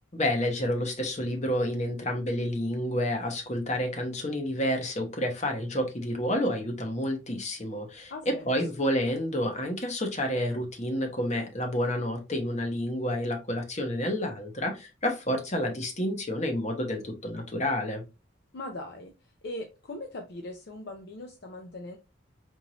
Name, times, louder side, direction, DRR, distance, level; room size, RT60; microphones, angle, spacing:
voice 1, 0.1-18.0, equal, 35° left, 3 dB, 0.9 m, -29 dB
voice 2, 8.1-8.5 18.5-19.1 19.4-22.0, left 2 dB, 55° left, 3 dB, 0.5 m, -40 dB
4.6 x 2.5 x 2.9 m, 0.27 s
head